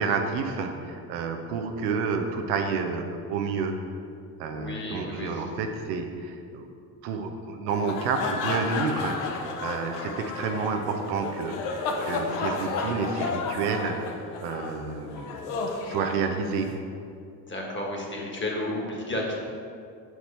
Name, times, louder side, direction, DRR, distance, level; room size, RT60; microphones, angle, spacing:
voice 1, 0.0-3.8 4.4-6.7 7.0-14.0 14.4-15.3 15.8-16.8, right 5 dB, 85° right, 4 dB, 0.7 m, -30 dB
voice 2, 4.5-5.4 12.1-13.0 17.5-19.4, left 1 dB, 25° left, -1 dB, 1.6 m, -33 dB
sound 1, 7.7-16.7, left 4 dB, 90° left, 0.7 m, -32 dB
6.5 x 4.7 x 4.3 m, 2.4 s
hypercardioid pair, 65°, 45 cm